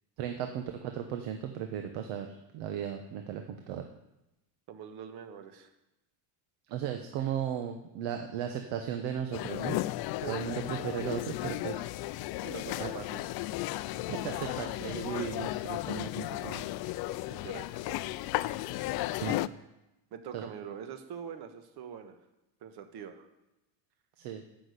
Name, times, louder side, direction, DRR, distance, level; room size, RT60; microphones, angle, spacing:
voice 1, 0.2-3.9 6.7-9.8 10.3-11.9 12.8-12.9 14.1-16.6 19.2-19.4 20.3-20.4 24.2-24.4, right 9 dB, 80° right, 5 dB, 1.2 m, -36 dB
voice 2, 4.7-5.7 10.2-10.5 12.4-13.2 17.3-18.0 20.1-22.2 22.6-23.3, right 8 dB, 55° right, 8 dB, 1.4 m, -44 dB
sound 1, 9.3-19.5, left 17 dB, 55° left, 0.5 m, -35 dB
11.5 x 6.3 x 8.1 m, 0.95 s
cardioid pair, 150°, 46 cm